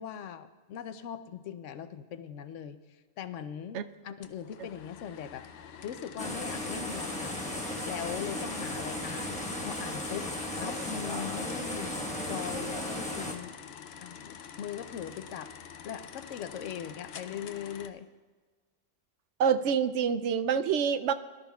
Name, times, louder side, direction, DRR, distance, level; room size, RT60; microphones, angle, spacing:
voice 1, 0.0-2.8 3.2-5.5 5.8-7.4 7.8-10.3 10.6-12.0 12.3-13.5 14.0-15.5 15.8-18.1, left 8 dB, 90° left, 10 dB, 1.0 m, -40 dB
sound 1, 4.2-17.9, left 8 dB, 65° left, 0.8 m, -47 dB
sound 2, 6.2-13.3, left 1 dB, 5° left, 1.1 m, -35 dB
voice 2, 19.4-21.1, right 7 dB, 75° right, 12 dB, 0.9 m, -26 dB
21.0 x 12.5 x 2.3 m, 1.4 s
omnidirectional pair, 1.2 m